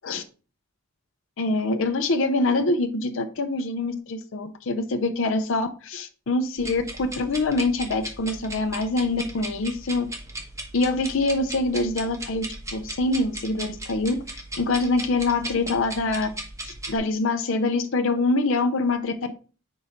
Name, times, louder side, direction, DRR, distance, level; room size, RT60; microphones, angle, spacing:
voice 1, 1.4-10.1 10.7-16.3 16.6-19.4, left 2 dB, 65° left, 7 dB, 0.6 m, -25 dB
sound 1, 6.6-17.0, right 1 dB, 15° right, 1.1 m, -37 dB
4.6 x 4.2 x 5.0 m, 0.37 s
head